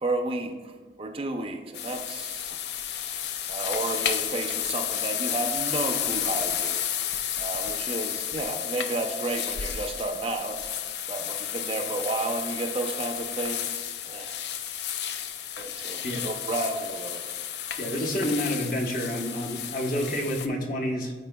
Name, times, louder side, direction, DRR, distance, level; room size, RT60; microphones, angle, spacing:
voice 1, 0.0-0.7 1.0-2.6 3.5-6.8 7.4-10.6 11.1-14.3 15.6-17.2 17.9-18.1, right 2 dB, 30° right, 4 dB, 0.5 m, -32 dB
sound 1, 1.7-20.5, left 10 dB, 70° left, 0.4 m, -32 dB
voice 2, 17.8-21.1, equal, 50° left, 1 dB, 0.9 m, -29 dB
13.0 x 4.4 x 2.2 m, 1.4 s
head